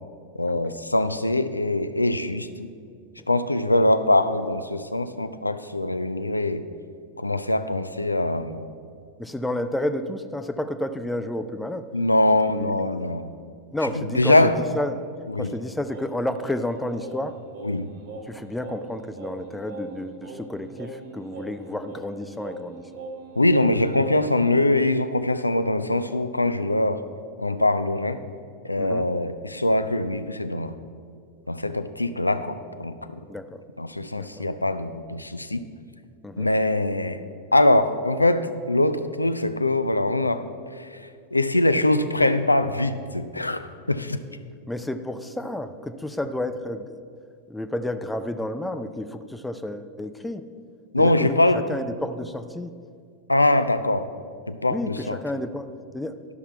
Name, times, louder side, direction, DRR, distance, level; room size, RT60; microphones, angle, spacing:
voice 1, 0.4-2.7 3.3-6.7 7.2-8.6 11.9-13.3 14.0-14.6 15.3-15.5 17.6-17.9 23.4-27.0 27.4-28.2 28.6-30.7 31.5-33.2 33.8-35.7 36.4-37.2 37.5-40.4 40.7-44.2 50.9-51.6 53.3-54.1 54.5-55.2, left 1 dB, 85° left, 10 dB, 0.4 m, -23 dB
voice 2, 9.2-11.9 12.5-12.7 13.7-15.0 15.3-17.4 18.3-22.9 28.8-29.1 33.3-33.6 34.2-34.5 36.2-36.5 44.7-47.0 47.5-50.4 51.0-52.7 54.7-56.2, left 1 dB, 5° left, 9 dB, 0.4 m, -31 dB
Singing, 15.9-24.5, right 3 dB, 60° right, 1.3 m, -40 dB
12.0 x 5.7 x 4.5 m, 2.2 s
figure-of-eight pair, 90°, 0 cm